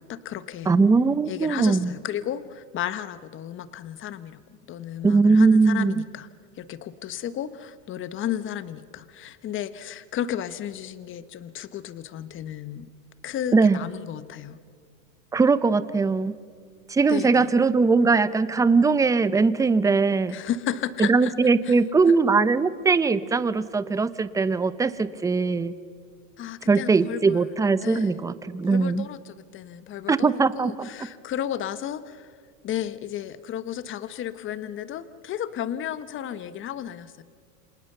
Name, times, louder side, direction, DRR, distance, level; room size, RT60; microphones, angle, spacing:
voice 1, 0.0-0.7 1.3-6.3 6.6-12.9 13.2-14.6 17.1-17.5 20.3-21.3 21.6-21.7 22.1-22.2 26.4-27.5 27.8-28.2 28.6-32.3 32.6-37.2, left 10 dB, 30° left, 14 dB, 1.2 m, -33 dB
voice 2, 0.7-1.9 5.0-6.0 13.5-13.8 15.3-16.3 16.9-20.4 21.0-25.7 26.7-29.0 30.1-30.9, right 4 dB, 10° right, 15 dB, 0.7 m, -20 dB
28.5 x 26.0 x 6.8 m, 2.1 s
supercardioid pair, 130°, 40 cm